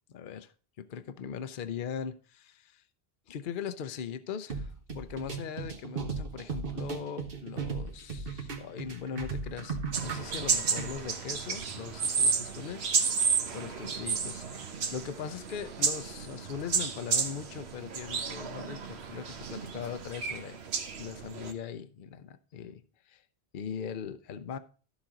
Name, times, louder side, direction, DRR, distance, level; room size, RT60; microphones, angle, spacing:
voice 1, 0.1-0.5 0.8-2.8 3.3-13.2 13.5-20.6 21.0-23.2 23.5-24.6, left 7 dB, 55° left, 0.8 m, -40 dB
sound 1, 4.5-10.9, right 5 dB, 60° right, 1.4 m, -37 dB
sound 2, 9.9-21.5, right 5 dB, 75° right, 1.3 m, -32 dB
12.0 x 7.2 x 3.8 m
omnidirectional pair, 1.1 m